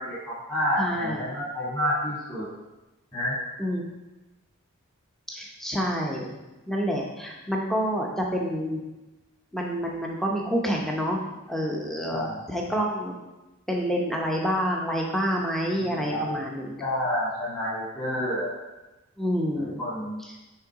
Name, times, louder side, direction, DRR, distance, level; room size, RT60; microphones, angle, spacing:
voice 1, 0.0-2.5 3.1-3.4 12.1-12.7 15.8-16.4 16.8-18.5 19.6-20.2, equal, 15° left, -11 dB, 1.9 m, -29 dB
voice 2, 0.8-1.2 3.6-3.8 5.3-6.3 6.7-8.8 9.5-11.2 11.5-13.1 13.7-16.8 19.2-19.8, equal, ahead, -1 dB, 0.7 m, -28 dB
6.6 x 3.7 x 4.8 m, 1.0 s
head